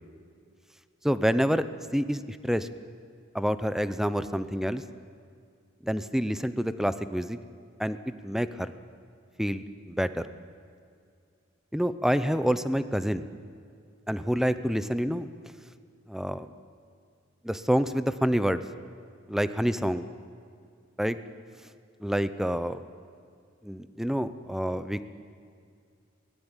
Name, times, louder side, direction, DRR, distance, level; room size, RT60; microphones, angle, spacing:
voice 1, 1.0-1.7 1.9-2.7 3.3-4.8 5.8-7.4 7.8-8.0 8.2-8.7 9.4-10.3 11.7-13.3 14.1-15.3 16.1-16.5 17.4-18.6 19.3-20.1 21.0-21.2 22.0-22.8 23.6-25.0, equal, ahead, 12 dB, 0.8 m, -27 dB
23.0 x 19.0 x 9.1 m, 2.3 s
head